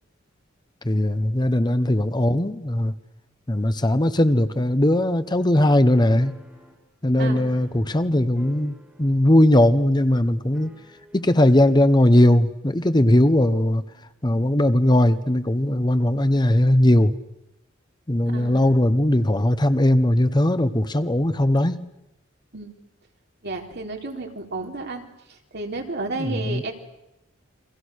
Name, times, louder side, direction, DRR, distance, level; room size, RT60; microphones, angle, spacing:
voice 1, 0.8-2.9 3.5-6.3 7.0-8.7 9.0-10.7 11.1-13.8 14.2-17.1 18.1-21.9 26.2-26.6, left 1 dB, 20° left, 11 dB, 1.0 m, -19 dB
sound 1, 5.9-8.1 8.3-9.4 9.6-9.7 10.5-11.3, left 1 dB, 5° right, 3.8 m, -48 dB
voice 2, 7.2-8.0 18.3-18.7 21.2-21.4 22.5-22.8 23.4-25.0 25.5-26.7, right 3 dB, 55° right, 2 dB, 3.9 m, -32 dB
30.0 x 24.5 x 6.5 m, 0.90 s
head